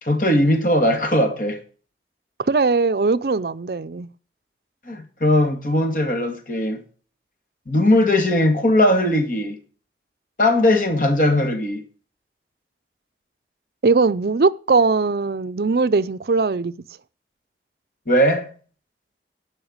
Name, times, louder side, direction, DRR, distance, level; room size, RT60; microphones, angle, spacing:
voice 1, 0.0-1.6 4.9-6.8 7.7-9.6 10.4-11.8 18.1-18.5, left 1 dB, 50° left, 2.1 m, -19 dB
voice 2, 2.5-4.1 13.8-16.7, right 4 dB, 60° right, 0.5 m, -20 dB
12.0 x 5.7 x 8.7 m
head